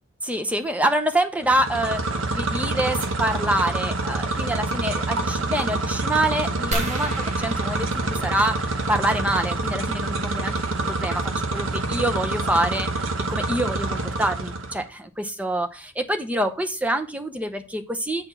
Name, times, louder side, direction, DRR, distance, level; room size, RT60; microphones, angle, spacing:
voice 1, 0.2-10.5 10.8-18.3, right 1 dB, 5° right, 7 dB, 0.7 m, -26 dB
sound 1, 1.4-14.8, right 2 dB, 65° right, 1.0 m, -27 dB
sound 2, 6.7-9.1 10.7-10.9 11.5-11.6 11.8-12.1, right 1 dB, 30° right, 1.7 m, -33 dB
9.0 x 4.2 x 5.7 m, 0.33 s
head